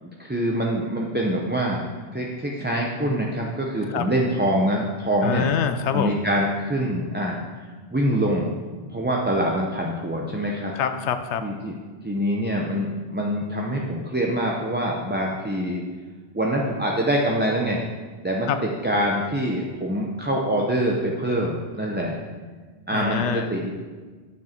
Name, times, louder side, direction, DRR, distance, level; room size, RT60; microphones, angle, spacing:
voice 1, 0.0-1.9 2.1-5.5 5.9-8.5 8.9-10.7 11.4-11.7 12.0-15.8 16.3-17.9 18.2-22.2 22.9-23.7, equal, 10° right, -2 dB, 0.6 m, -25 dB
voice 2, 5.2-6.1 10.7-11.4 18.5-18.6 22.9-23.5, left 8 dB, 80° left, 9 dB, 0.9 m, -25 dB
9.3 x 6.2 x 4.4 m, 1.4 s
omnidirectional pair, 1.1 m